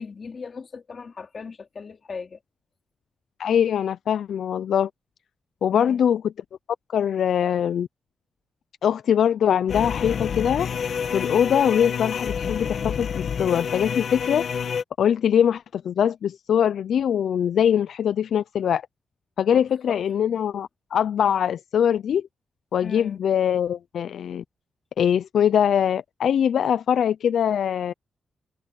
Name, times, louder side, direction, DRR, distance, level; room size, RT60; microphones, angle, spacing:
voice 1, 0.0-2.4 5.7-6.0 19.5-20.0 22.8-23.2, left 5 dB, 35° left, 3.8 m, -38 dB
voice 2, 3.4-4.9 5.6-6.3 6.9-7.9 8.8-10.7 11.1-14.5 15.0-18.8 19.4-22.2 22.7-24.4 25.0-27.9, left 9 dB, 70° left, 0.4 m, -22 dB
sound 1, 9.7-14.8, left 7 dB, 55° left, 1.7 m, -28 dB
wide cardioid pair, 175°, 0 cm